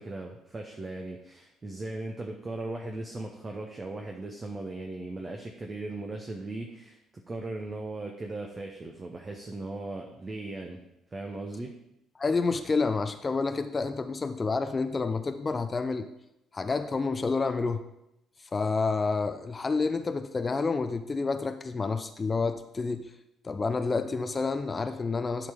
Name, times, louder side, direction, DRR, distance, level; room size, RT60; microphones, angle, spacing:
voice 1, 0.0-10.8 11.1-11.7, right 2 dB, 30° right, 2 dB, 1.0 m, -38 dB
voice 2, 12.2-16.1 16.5-17.8 18.5-23.1 23.4-25.5, left 4 dB, 30° left, 9 dB, 0.6 m, -29 dB
11.5 x 4.6 x 5.2 m, 0.85 s
figure-of-eight pair, 45°, 0 cm